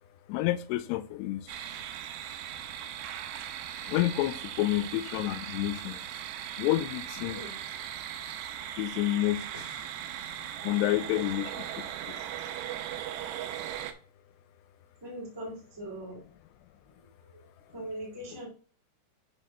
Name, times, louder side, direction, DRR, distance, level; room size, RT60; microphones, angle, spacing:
voice 1, 0.3-1.7 3.9-6.1 6.6-7.5 8.8-9.9 10.6-12.2, left 15 dB, 85° left, 13 dB, 2.6 m, -30 dB
sound 1, 1.5-13.9, right 10 dB, 80° right, 2.8 m, -39 dB
voice 2, 15.0-16.2 17.3-17.4 17.7-18.5, right 1 dB, 10° right, -3 dB, 1.2 m, -40 dB
6.4 x 4.3 x 5.5 m, 0.41 s
omnidirectional pair, 5.0 m